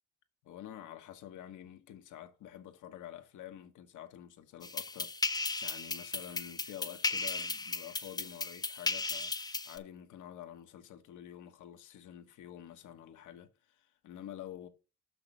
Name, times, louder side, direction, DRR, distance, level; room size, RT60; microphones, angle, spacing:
voice 1, 0.4-14.7, left 11 dB, 80° left, 1.2 m, -48 dB
sound 1, 4.6-9.8, left 3 dB, 15° left, 0.5 m, -36 dB
6.0 x 5.9 x 5.5 m
cardioid pair, 90°, 30 cm